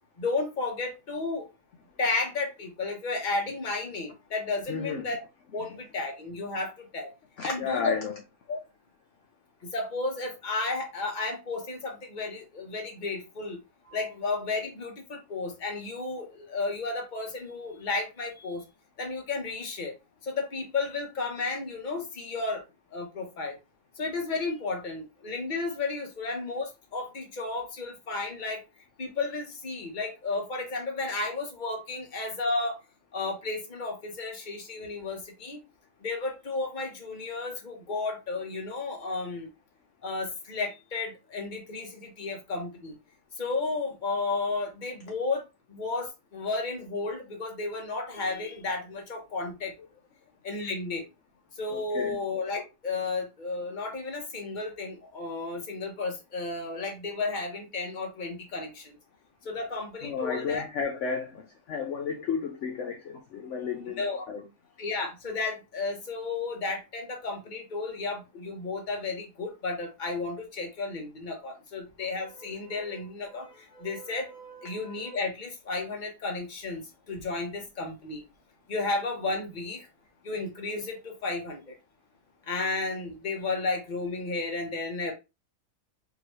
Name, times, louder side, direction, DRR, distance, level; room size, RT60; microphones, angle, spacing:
voice 1, 0.2-1.5 2.0-5.2 5.5-7.1 7.4-8.0 8.5-8.6 9.6-13.6 13.8-18.6 19.0-19.9 20.2-22.6 22.9-23.6 24.0-28.6 29.0-32.8 33.1-35.6 36.0-39.5 40.0-43.0 43.3-49.7 50.4-51.1 51.5-59.0 59.4-60.6 64.0-64.2 64.8-78.2 78.7-79.9 80.2-81.8 82.4-85.1, left 3 dB, 35° left, 1.2 m, -33 dB
voice 2, 4.7-5.0 7.4-8.1 51.9-52.2 60.0-64.0 64.3-64.4, left 6 dB, 60° left, 0.9 m, -32 dB
4.7 x 3.0 x 3.1 m
omnidirectional pair, 1.6 m